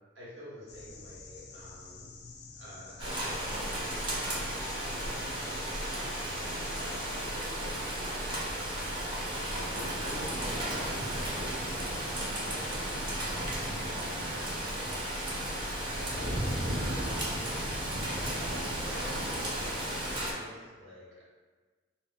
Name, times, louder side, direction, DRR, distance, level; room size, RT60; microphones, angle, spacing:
voice 1, 0.1-2.0 2.5-15.3 15.7-16.4 16.8-17.4 18.1-21.2, equal, 80° right, -8 dB, 0.8 m, -48 dB
sound 1, 0.7-11.4, left 4 dB, 60° left, 0.3 m, -51 dB
Rain, 3.0-20.3, right 1 dB, 25° right, 0.5 m, -34 dB
2.0 x 2.0 x 3.7 m, 1.4 s
head